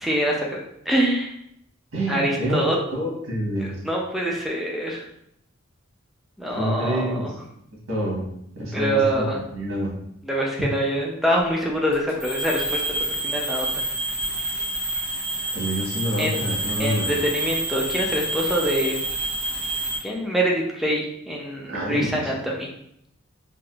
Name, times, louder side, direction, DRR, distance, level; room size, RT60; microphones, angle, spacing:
voice 1, 0.0-0.6 0.9-1.3 2.1-2.8 3.6-5.0 6.4-7.3 8.7-9.4 10.2-12.8 13.2-13.8 16.2-16.3 16.8-19.0 20.0-22.7, right 1 dB, ahead, -2 dB, 0.4 m, -25 dB
voice 2, 1.9-3.8 6.5-7.4 7.9-8.3 8.5-9.9 10.6-10.7 15.5-17.1 21.7-22.4, equal, 70° right, -3 dB, 1.1 m, -27 dB
sound 1, 11.9-20.0, right 2 dB, 25° right, 1.4 m, -28 dB
3.4 x 2.5 x 2.3 m, 0.74 s
head